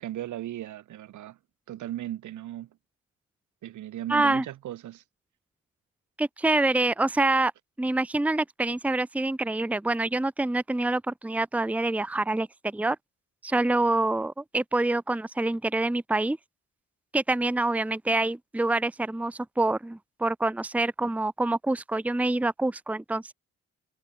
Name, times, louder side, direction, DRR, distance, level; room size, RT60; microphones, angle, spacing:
voice 1, 0.0-1.4 1.7-2.7 3.6-5.0, right 13 dB, 75° right, 2.2 m, -36 dB
voice 2, 4.1-4.4 6.2-7.5 7.8-13.0 13.4-16.4 17.1-23.3, right 2 dB, 5° right, 0.9 m, -26 dB
cardioid pair, 90°, 30 cm